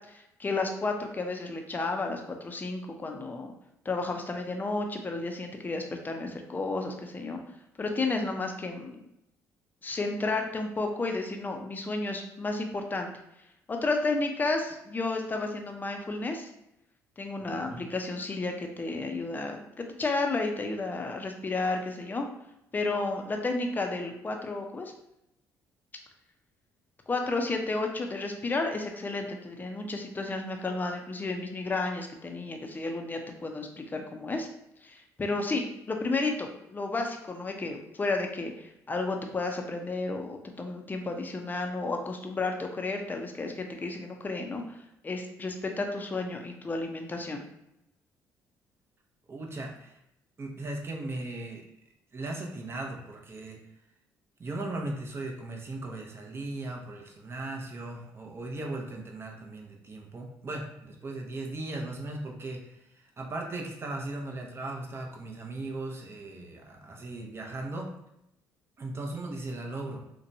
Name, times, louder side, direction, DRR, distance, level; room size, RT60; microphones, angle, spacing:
voice 1, 0.1-3.5 3.8-7.4 7.8-9.0 9.8-13.1 13.7-16.5 17.2-22.3 22.7-24.9 27.1-34.5 34.8-47.4, left 3 dB, 25° left, 3 dB, 0.5 m, -32 dB
voice 2, 17.4-17.8 49.3-50.0 50.4-51.6 52.1-53.6 54.4-67.9 68.8-70.0, right 2 dB, 35° right, 0 dB, 0.6 m, -37 dB
2.8 x 2.2 x 2.6 m, 0.83 s
supercardioid pair, 70°, 7 cm